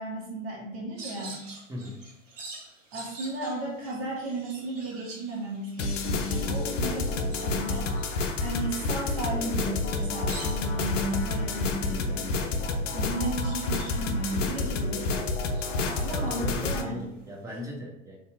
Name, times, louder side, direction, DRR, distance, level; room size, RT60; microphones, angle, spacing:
voice 1, 0.0-1.4 2.9-7.9 8.4-12.5 12.9-15.1 15.8-17.0, right 2 dB, 55° right, -2 dB, 1.2 m, -34 dB
sound 1, 1.0-15.1 15.4-17.3, right 2 dB, 80° right, 0.9 m, -48 dB
voice 2, 1.7-2.1 16.1-18.2, equal, 10° right, -2 dB, 0.5 m, -38 dB
sound 2, 5.8-16.8, left 3 dB, 80° left, 0.5 m, -29 dB
3.3 x 2.7 x 2.2 m, 0.88 s
hypercardioid pair, 95°, 38 cm